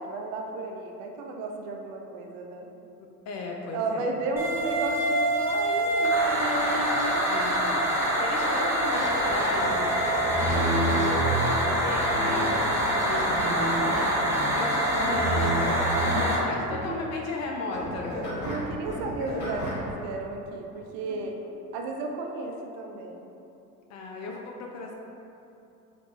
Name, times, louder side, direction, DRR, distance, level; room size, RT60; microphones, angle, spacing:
voice 1, 0.0-2.7 3.7-6.9 7.1-7.2 16.1-17.1 18.4-21.4 21.7-23.3, right 3 dB, 50° right, 2 dB, 0.5 m, -34 dB
voice 2, 3.3-4.1 7.3-9.9 10.4-18.1 23.9-24.9, left 3 dB, 35° left, 0 dB, 0.4 m, -36 dB
sound 1, 4.4-16.4, right 1 dB, 5° right, 0.7 m, -25 dB
sound 2, 6.2-11.4 12.1-12.6 13.2-14.7 15.0-17.0, right 2 dB, 75° right, 1.5 m, -32 dB
sound 3, 8.9-10.6 11.8-16.9 17.1-17.5 17.7-19.9, equal, 60° left, 1.4 m, -36 dB
4.0 x 2.9 x 3.1 m, 2.8 s
hypercardioid pair, 75°, 49 cm